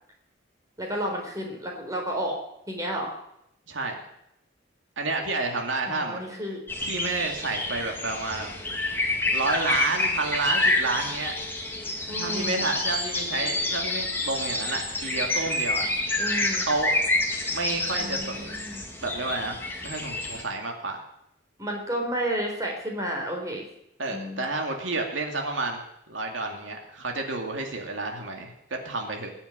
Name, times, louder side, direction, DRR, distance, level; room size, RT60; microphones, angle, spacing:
voice 1, 0.8-2.4 2.7-3.1 5.8-6.6 12.1-12.7 16.2-16.7 18.0-18.8 21.6-23.6 24.1-24.4, equal, 15° right, 0 dB, 4.0 m, -31 dB
voice 2, 3.7-4.0 5.0-6.2 6.8-8.5 8.9-9.0 9.3-11.4 12.2-15.9 16.6-17.0 17.5-18.6 19.0-21.0 24.0-25.8 26.1-29.3, right 3 dB, 75° right, 2 dB, 2.5 m, -30 dB
sound 1, 6.7-20.4, left 2 dB, 10° left, 2.0 m, -28 dB
20.5 x 7.1 x 9.8 m, 0.79 s
head